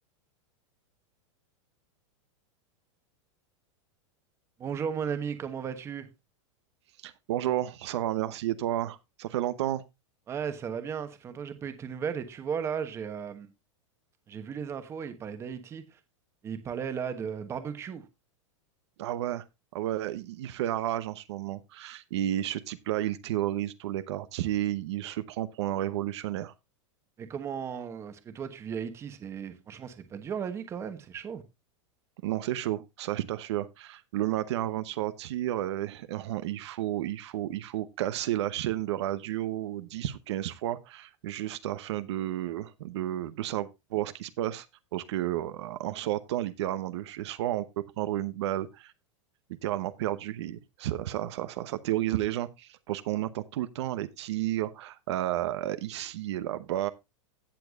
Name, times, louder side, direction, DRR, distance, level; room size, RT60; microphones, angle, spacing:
voice 1, 4.6-6.1 10.3-13.5 14.3-16.0 16.4-18.0 27.2-31.4, right 7 dB, 15° right, 1.2 m, -35 dB
voice 2, 7.0-9.8 19.0-19.4 19.7-26.5 32.2-44.7 44.9-48.9 49.6-56.9, right 13 dB, 60° right, 0.9 m, -32 dB
16.5 x 7.0 x 2.4 m
supercardioid pair, 165°, 16 cm